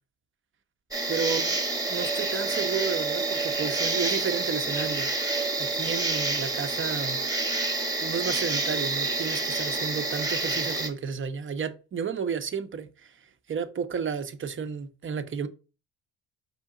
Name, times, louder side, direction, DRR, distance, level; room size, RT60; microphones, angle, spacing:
sound 1, 0.9-10.9, right 3 dB, 10° right, 1.1 m, -28 dB
voice 1, 1.1-1.6 1.9-5.1 5.6-7.2 8.0-13.1 13.5-15.5, right 6 dB, 35° right, 0.7 m, -32 dB
5.0 x 2.7 x 3.7 m
hypercardioid pair, 60°, 36 cm